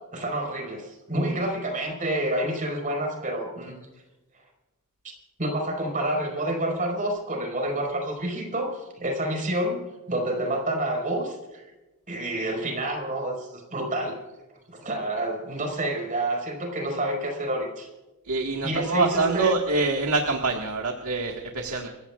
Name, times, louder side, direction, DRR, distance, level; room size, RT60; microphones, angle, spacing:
voice 1, 0.1-3.7 5.4-9.8 10.1-11.6 12.1-14.2 14.7-17.9 18.6-19.6, right 1 dB, 40° right, 2 dB, 4.8 m, -28 dB
voice 2, 18.2-21.9, right 3 dB, 90° right, 1 dB, 1.7 m, -25 dB
28.5 x 16.0 x 2.4 m, 1.1 s
head